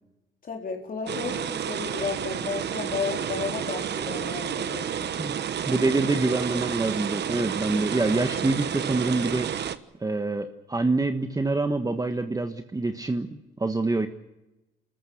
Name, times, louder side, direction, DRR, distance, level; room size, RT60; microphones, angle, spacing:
voice 1, 0.4-5.3, left 5 dB, 45° left, 1 dB, 3.6 m, -33 dB
sound 1, 1.1-9.8, right 9 dB, 60° right, 1.2 m, -30 dB
voice 2, 5.6-9.5 10.0-14.1, right 2 dB, 20° right, 7 dB, 1.4 m, -26 dB
27.0 x 14.5 x 8.3 m, 0.98 s
cardioid pair, 90°, 20 cm